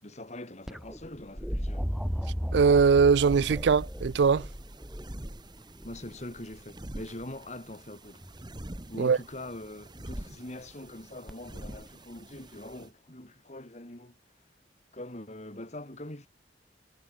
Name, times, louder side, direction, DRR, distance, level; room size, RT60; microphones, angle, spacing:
voice 1, 0.0-1.9 5.8-8.2 8.9-14.2 14.9-16.3, left 1 dB, 40° left, 3.1 m, -43 dB
sound 1, 0.7-6.6 8.2-8.7 11.3-11.4, equal, ahead, 1.9 m, -35 dB
voice 2, 2.5-4.5 9.0-9.2, right 5 dB, 65° right, 0.4 m, -21 dB
sound 2, 3.1-12.9, right 1 dB, 25° right, 1.5 m, -45 dB
head